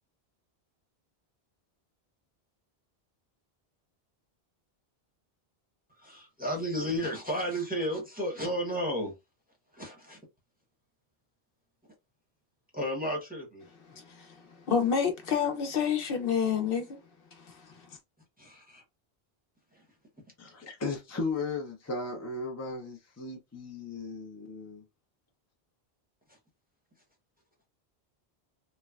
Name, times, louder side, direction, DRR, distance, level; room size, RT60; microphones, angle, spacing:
voice 1, 6.0-9.1 9.7-10.2 12.7-13.6 18.4-18.8, equal, 10° right, 0.7 m, -33 dB
voice 2, 14.7-16.9, left 7 dB, 65° left, 0.8 m, -27 dB
voice 3, 20.4-24.8, left 3 dB, 30° left, 0.3 m, -36 dB
3.1 x 2.1 x 2.3 m
omnidirectional pair, 1.1 m